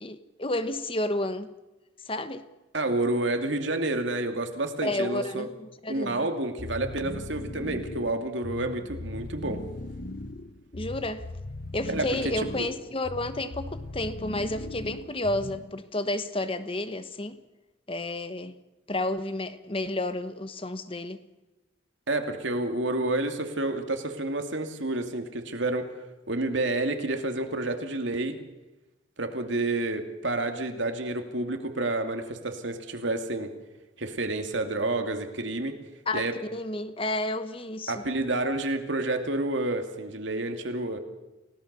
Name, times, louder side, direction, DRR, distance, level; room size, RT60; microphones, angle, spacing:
voice 1, 0.0-1.5 2.1-2.4 4.8-6.3 10.7-11.2 11.7-17.4 17.9-18.5 18.9-21.2 36.1-38.0, left 1 dB, 25° left, 11 dB, 1.1 m, -31 dB
voice 2, 2.7-5.5 5.9-9.6 11.9-12.7 22.1-25.9 26.3-28.4 29.2-33.5 34.0-35.8 36.1-36.3 37.9-41.0, right 2 dB, 65° right, 6 dB, 2.6 m, -29 dB
sound 1, 6.6-15.8, left 2 dB, 50° left, 0.8 m, -39 dB
29.5 x 17.5 x 6.8 m, 1.1 s
head